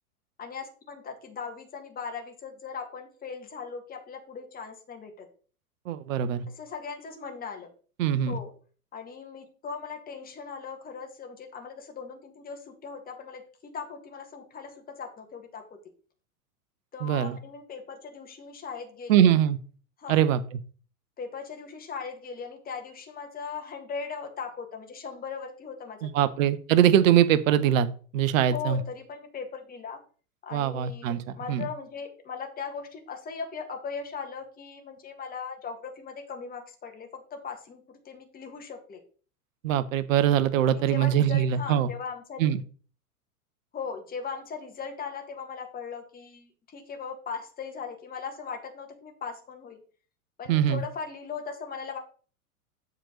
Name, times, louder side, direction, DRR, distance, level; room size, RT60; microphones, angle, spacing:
voice 1, 0.4-5.3 6.5-7.7 8.3-8.5 8.9-15.6 16.9-19.3 20.0-20.2 21.2-26.2 28.5-30.0 30.4-39.0 40.7-42.5 43.7-49.8 50.4-52.0, left 5 dB, 20° left, 3 dB, 1.7 m, -39 dB
voice 2, 5.9-6.5 8.0-8.4 17.0-17.4 19.1-19.6 20.1-20.6 26.0-27.9 28.1-28.8 30.5-31.2 31.5-31.6 39.6-41.9 42.4-42.6 50.5-50.8, right 10 dB, 60° right, 13 dB, 0.9 m, -22 dB
7.5 x 4.0 x 6.4 m, 0.40 s
hypercardioid pair, 100°, 45 cm